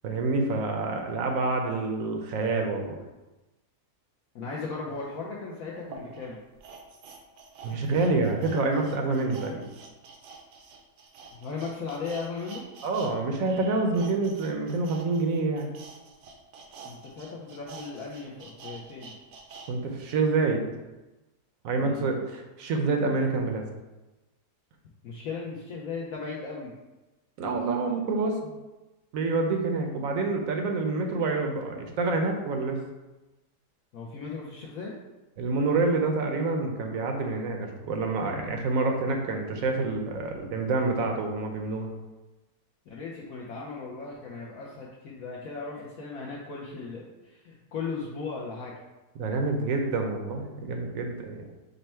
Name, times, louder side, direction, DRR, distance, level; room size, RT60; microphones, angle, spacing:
voice 1, 0.0-3.0 7.6-9.6 12.8-15.7 19.7-20.7 21.6-23.6 27.4-28.5 29.1-32.8 35.4-41.9 49.2-51.4, right 3 dB, 65° right, 3 dB, 0.9 m, -27 dB
voice 2, 4.3-6.4 11.3-12.6 16.8-19.2 21.8-22.3 25.0-26.7 33.9-34.9 42.9-48.7, left 4 dB, 65° left, -4 dB, 1.0 m, -37 dB
sound 1, 5.0-5.1 5.8-13.1 13.4-19.7 20.1-20.2, right 4 dB, 85° right, 1.3 m, -47 dB
5.3 x 2.2 x 4.3 m, 1.1 s
omnidirectional pair, 1.8 m